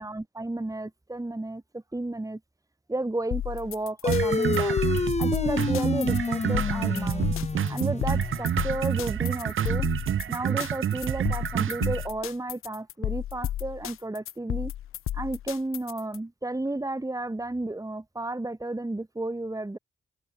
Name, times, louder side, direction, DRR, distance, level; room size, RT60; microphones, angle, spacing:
voice 1, 0.0-2.4 2.9-4.8 5.2-7.3 7.7-9.9 10.3-14.7 15.1-19.8, right 2 dB, 15° right, 2.7 m, -32 dB
sound 1, 3.3-16.2, left 12 dB, 85° left, 1.2 m, -33 dB
sound 2, 4.0-8.9, left 4 dB, 30° left, 1.3 m, -29 dB
sound 3, 4.1-12.1, right 9 dB, 75° right, 1.7 m, -28 dB
open air
cardioid pair, 55°, 21 cm